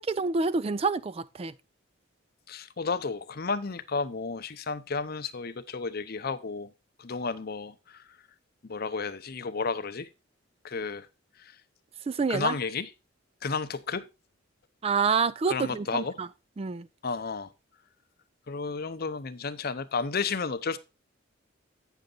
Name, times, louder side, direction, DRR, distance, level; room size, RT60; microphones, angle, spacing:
voice 1, 0.0-1.5 12.1-12.5 14.8-16.3 16.6-16.9, right 4 dB, 30° right, 0.4 m, -27 dB
voice 2, 2.5-6.7 7.0-8.1 8.6-10.1 10.6-11.1 11.4-11.5 12.3-12.9 13.4-14.0 15.5-16.2 17.0-17.5 18.5-20.8, left 4 dB, 50° left, 0.7 m, -32 dB
9.0 x 6.5 x 3.9 m
head